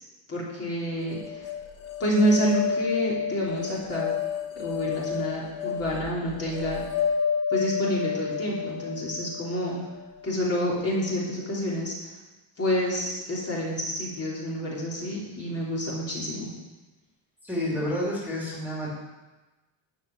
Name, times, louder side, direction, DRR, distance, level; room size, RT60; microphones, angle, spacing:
voice 1, 0.3-1.5 2.0-4.1 4.6-6.8 7.5-9.9 10.2-12.1 12.6-16.5, equal, 30° left, -5 dB, 3.4 m, -28 dB
Corto Rugoso, 1.1-10.3, left 7 dB, 70° left, 1.6 m, -31 dB
voice 2, 17.4-18.9, left 1 dB, 5° right, -5 dB, 2.9 m, -29 dB
12.5 x 6.0 x 9.4 m, 1.1 s
cardioid pair, 170°, 49 cm